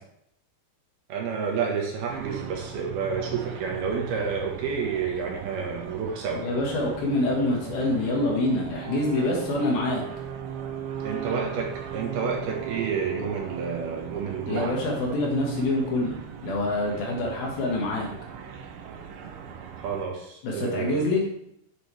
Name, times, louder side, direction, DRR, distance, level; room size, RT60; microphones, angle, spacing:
voice 1, 1.1-6.4 11.0-14.7 19.8-21.0, right 6 dB, 70° right, 0 dB, 3.1 m, -30 dB
sound 1, 2.1-20.1, right 8 dB, 90° right, 1.8 m, -38 dB
voice 2, 6.3-10.0 14.5-16.2 16.4-18.1 20.4-21.2, left 2 dB, 65° left, -1 dB, 3.2 m, -26 dB
9.5 x 7.8 x 3.4 m, 0.74 s
omnidirectional pair, 5.0 m